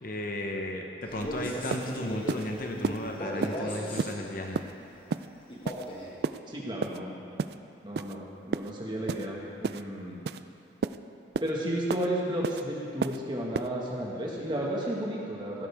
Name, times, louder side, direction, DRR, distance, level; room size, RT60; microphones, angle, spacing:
voice 1, 0.0-4.6, left 1 dB, 50° left, 2 dB, 0.9 m, -34 dB
Male speech man speaking, 1.0-4.1 5.5-6.2, equal, 30° left, 1.7 m, -37 dB
sound 1, 1.2-1.3 1.7-1.9 2.3-2.4 2.8-3.0 3.4-3.6 4.0-4.1 4.5-4.7 5.1-5.3 5.7-5.9 6.2-6.4 6.8-7.0 7.4-7.6 8.0-8.1 8.5-8.7 9.1-9.3 9.6-9.8 10.3-10.4 10.8-11.0 11.3-11.5 11.9-12.1 12.4-12.6 13.0-13.2 13.5-13.7, right 5 dB, 65° right, 0.3 m, -31 dB
voice 2, 6.5-7.1 7.8-10.2 11.4-15.7, right 1 dB, 25° right, -3 dB, 1.7 m, -33 dB
16.5 x 12.0 x 3.6 m, 2.6 s
head